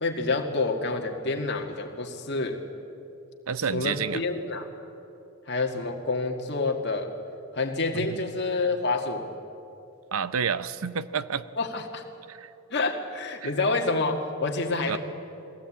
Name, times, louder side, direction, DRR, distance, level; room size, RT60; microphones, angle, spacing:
voice 1, 0.0-2.6 3.7-4.7 5.5-7.1 7.5-9.3 11.6-12.0 12.7-15.0, left 3 dB, 50° left, 3 dB, 1.8 m, -28 dB
voice 2, 3.5-4.2 7.9-8.2 10.1-11.4 12.3-12.5 13.4-13.5 14.9-15.0, right 6 dB, 75° right, 15 dB, 0.7 m, -29 dB
21.5 x 17.0 x 8.6 m, 2.8 s
head